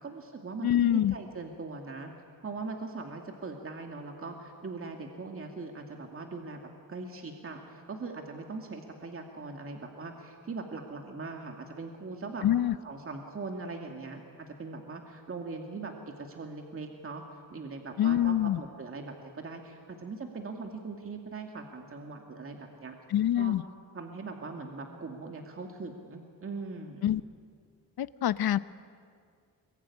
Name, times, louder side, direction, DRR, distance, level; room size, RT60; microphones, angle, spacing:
voice 1, 0.0-2.1 2.4-6.6 6.9-12.4 12.8-17.2 17.5-23.0 23.4-23.5 23.9-27.1, right 3 dB, 35° right, 2 dB, 2.3 m, -40 dB
voice 2, 0.6-1.1 12.4-12.7 18.0-18.6 23.1-23.6 27.0-27.2 28.0-28.6, left 11 dB, 75° left, 15 dB, 0.9 m, -25 dB
26.5 x 23.0 x 9.8 m, 2.2 s
wide cardioid pair, 125°, 37 cm